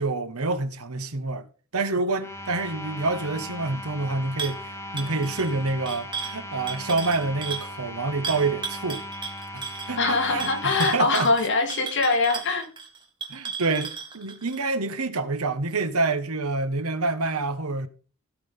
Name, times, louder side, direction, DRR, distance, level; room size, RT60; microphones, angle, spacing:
voice 1, 0.0-1.5 1.7-9.0 9.5-11.3 13.3-17.9, right 3 dB, 85° right, 1.4 m, -27 dB
sound 1, 2.1-11.0, left 1 dB, 10° left, 1.2 m, -38 dB
sound 2, 4.4-4.6 5.0-7.7 8.2-14.6, right 5 dB, 20° right, 2.3 m, -35 dB
voice 2, 10.0-12.7, left 3 dB, 55° left, 2.9 m, -23 dB
17.0 x 6.2 x 3.7 m
head